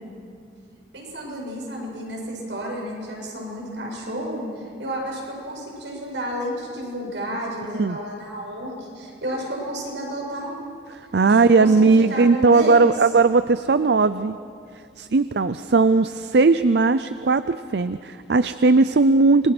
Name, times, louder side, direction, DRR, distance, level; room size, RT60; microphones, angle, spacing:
voice 1, 0.9-10.7 11.2-12.9, equal, 85° right, -2 dB, 7.7 m, -31 dB
voice 2, 10.9-14.3 15.0-19.5, right 3 dB, 65° right, 13 dB, 0.5 m, -18 dB
28.5 x 23.0 x 6.1 m, 2.3 s
head